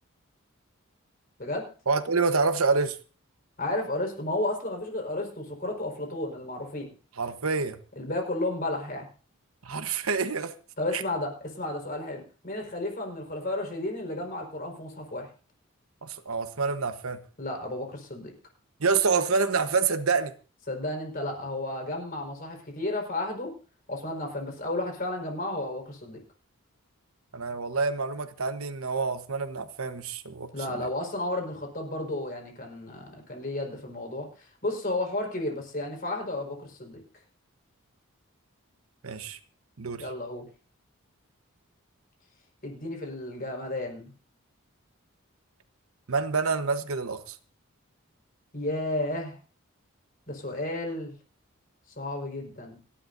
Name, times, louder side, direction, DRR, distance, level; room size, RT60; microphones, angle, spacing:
voice 1, 1.9-3.0 7.2-7.8 9.6-10.5 10.9-11.0 16.0-17.2 18.8-20.3 27.3-30.9 39.0-39.4 39.8-40.0 46.1-47.4, right 4 dB, 80° right, 1.2 m, -27 dB
voice 2, 3.6-6.9 7.9-9.1 10.8-15.3 17.4-18.3 20.7-23.5 23.9-26.2 30.5-37.0 40.0-40.5 42.6-44.1 48.5-49.4 50.3-51.1 52.0-52.8, left 1 dB, 45° left, 4.8 m, -32 dB
29.5 x 11.5 x 2.7 m
head